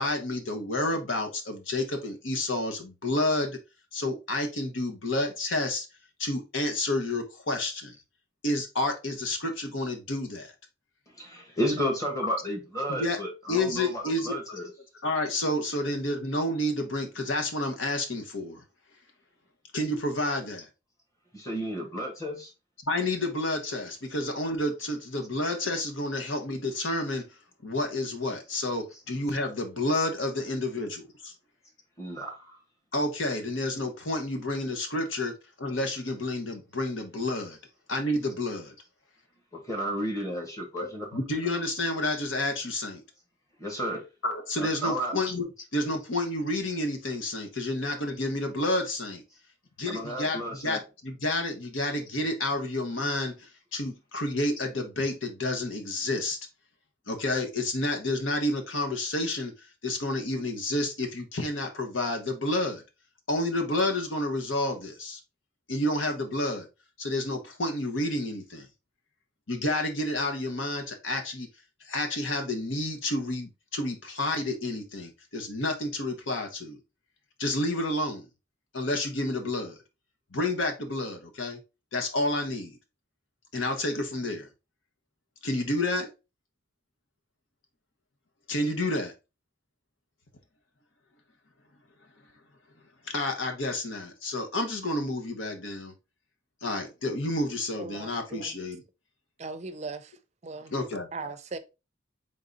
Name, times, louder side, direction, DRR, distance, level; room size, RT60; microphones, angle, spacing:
voice 1, 0.0-3.6 3.9-5.9 6.2-7.9 8.4-10.5 12.9-13.2 13.5-14.3 15.0-18.6 19.7-20.7 22.8-27.3 27.6-31.3 32.9-37.6 37.9-38.7 40.8-40.9 41.1-43.0 44.2-45.5 45.7-49.2 49.8-56.4 57.1-62.8 63.3-65.2 65.7-66.7 67.0-68.7 69.5-71.5 71.8-76.8 77.4-78.3 78.7-79.8 80.3-81.6 81.9-82.8 83.5-84.5 85.4-86.1 88.5-89.1 93.0-95.9 96.6-98.8 100.7-101.1, left 1 dB, 75° left, 1.1 m, -30 dB
voice 2, 11.2-14.7 21.3-22.5 32.0-32.6 39.5-41.1 43.6-44.0 44.6-45.1 49.9-50.8, equal, 15° left, 1.3 m, -32 dB
voice 3, 97.8-98.5 99.4-100.1 100.4-100.7 101.1-101.6, right 3 dB, 35° right, 0.5 m, -38 dB
3.9 x 3.5 x 3.9 m
head